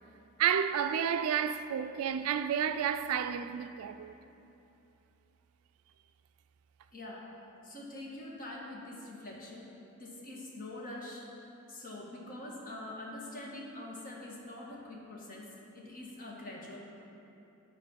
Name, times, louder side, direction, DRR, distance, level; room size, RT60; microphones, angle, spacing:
voice 1, 0.4-4.1, right 8 dB, 65° right, 0.3 m, -31 dB
voice 2, 6.9-7.3 7.6-9.7 10.0-16.8, left 1 dB, 40° left, 1.4 m, -45 dB
9.9 x 4.4 x 6.2 m
head